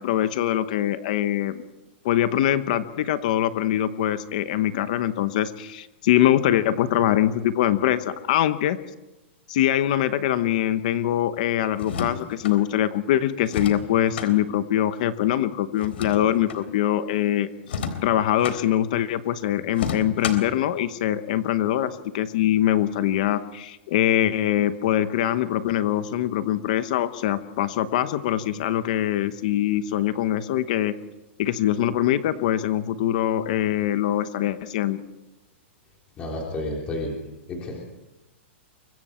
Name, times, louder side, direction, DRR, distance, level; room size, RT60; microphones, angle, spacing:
voice 1, 0.0-1.6 2.0-8.8 9.5-17.5 18.0-30.9 31.4-35.0, left 12 dB, 35° left, 12 dB, 1.0 m, -23 dB
sound 1, 11.7-12.6 13.5-14.3 15.8-16.6 17.6-18.6 19.7-20.6, left 6 dB, 60° left, 3.6 m, -31 dB
voice 2, 36.2-37.1 37.5-37.8, left 1 dB, 15° left, -2 dB, 3.5 m, -30 dB
25.0 x 23.5 x 4.5 m, 1.0 s
hypercardioid pair, 175°, 7 cm